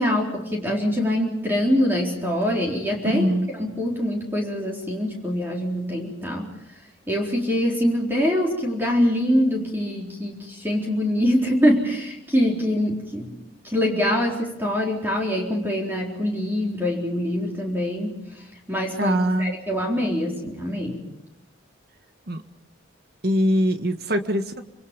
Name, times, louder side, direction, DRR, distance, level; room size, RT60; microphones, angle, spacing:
voice 1, 0.0-3.3 3.6-6.5 7.1-13.4 13.6-21.0, equal, 10° right, -1 dB, 4.0 m, -24 dB
voice 2, 3.0-3.5 19.0-19.6 22.3-22.4 23.2-24.6, equal, 55° right, 8 dB, 1.8 m, -22 dB
26.5 x 26.5 x 5.4 m, 0.88 s
head